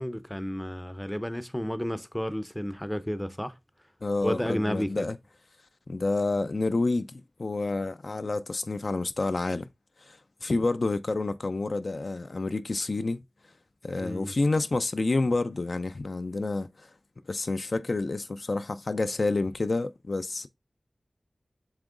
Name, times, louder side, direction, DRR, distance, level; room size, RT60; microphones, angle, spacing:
voice 1, 0.0-3.5 4.2-5.1 14.0-14.3, equal, 5° left, 0.5 m, -32 dB
voice 2, 4.0-5.2 5.9-9.7 10.1-13.2 13.8-16.9 17.3-20.5, left 3 dB, 60° left, 0.4 m, -29 dB
7.2 x 3.0 x 2.4 m
wide cardioid pair, 60°, 0 cm